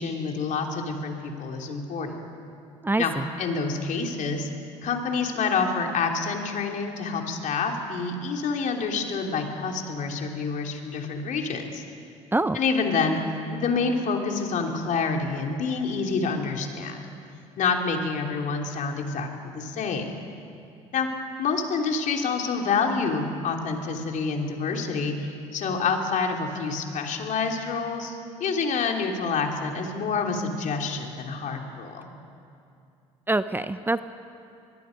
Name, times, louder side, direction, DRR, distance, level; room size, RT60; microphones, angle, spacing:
voice 1, 0.0-2.2 3.0-4.5 4.8-11.8 12.5-13.2 13.5-17.0 17.6-20.1 20.9-21.1 21.4-32.1, left 4 dB, 55° left, 2 dB, 3.2 m, -27 dB
voice 2, 2.8-3.3 12.3-12.6 33.3-34.0, right 2 dB, 15° right, 12 dB, 0.7 m, -25 dB
24.0 x 21.0 x 5.3 m, 2.5 s
hypercardioid pair, 65°, 16 cm